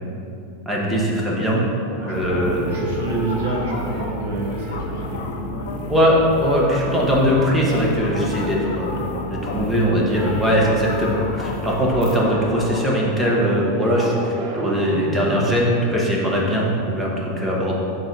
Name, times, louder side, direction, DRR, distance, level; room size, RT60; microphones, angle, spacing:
voice 1, 0.7-1.6 2.1-2.7 5.9-9.0 9.3-17.7, equal, 5° right, -4 dB, 0.7 m, -20 dB
sound 1, 1.3-2.4 2.7-6.0 6.4-9.9 10.1-15.6, right 2 dB, 40° right, 0.6 m, -34 dB
voice 2, 1.9-5.3 9.4-9.8, right 2 dB, 70° right, -3 dB, 1.5 m, -28 dB
sound 2, 2.1-12.2, left 1 dB, 35° left, 0.5 m, -32 dB
sound 3, 3.1-14.3, left 4 dB, 85° left, 0.5 m, -35 dB
4.7 x 3.8 x 5.7 m, 2.7 s
supercardioid pair, 180°, 0 cm